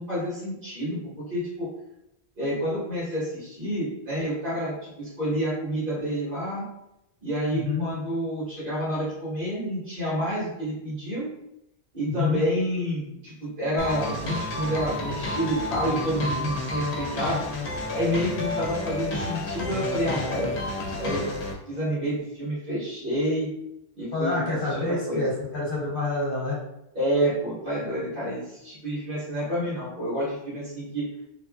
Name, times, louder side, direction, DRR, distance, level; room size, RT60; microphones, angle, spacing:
voice 1, 0.0-1.7 2.4-6.6 7.2-11.3 11.9-17.4 17.9-20.5 20.9-21.2 21.7-23.5 23.9-25.2 27.0-31.0, equal, 55° right, -9 dB, 1.7 m, -29 dB
voice 2, 7.5-7.9 12.0-12.4 24.1-26.6, left 3 dB, 60° left, -5 dB, 1.0 m, -27 dB
sound 1, 13.8-21.5, left 2 dB, 85° left, 0.9 m, -30 dB
3.1 x 2.5 x 2.2 m, 0.84 s
omnidirectional pair, 1.1 m